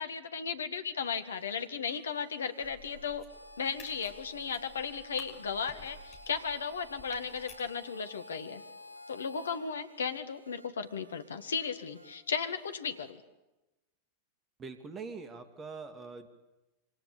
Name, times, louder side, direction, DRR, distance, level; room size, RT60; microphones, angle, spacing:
voice 1, 0.0-3.2 3.6-8.6 9.1-13.2, left 6 dB, 70° left, 9 dB, 1.9 m, -35 dB
sound 1, 1.1-13.1, right 3 dB, 70° right, 7.8 m, -61 dB
sound 2, 2.6-7.7, left 4 dB, 35° left, 6.3 m, -54 dB
Harmonica, 3.3-9.6, left 1 dB, 90° right, 4.4 m, -51 dB
voice 2, 14.6-16.3, right 4 dB, 25° right, 8 dB, 2.6 m, -43 dB
27.0 x 25.0 x 8.7 m, 1.0 s
figure-of-eight pair, 90°, 0 cm